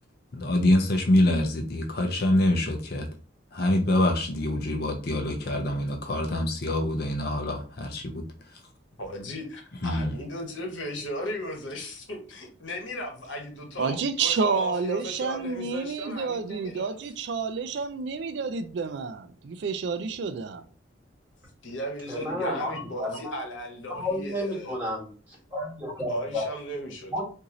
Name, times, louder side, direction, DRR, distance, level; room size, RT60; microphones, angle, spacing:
voice 1, 0.3-3.1 3.5-8.1 9.8-10.1, left 1 dB, 55° left, 0.6 m, -25 dB
voice 2, 9.0-17.0 21.6-24.8 26.1-27.2, equal, 80° left, 1.1 m, -36 dB
voice 3, 13.8-20.7, right 5 dB, 60° right, 0.3 m, -29 dB
voice 4, 22.1-23.3 23.9-25.1 25.5-26.5 27.1-27.2, left 1 dB, 10° right, 1.7 m, -31 dB
2.9 x 2.6 x 3.8 m
head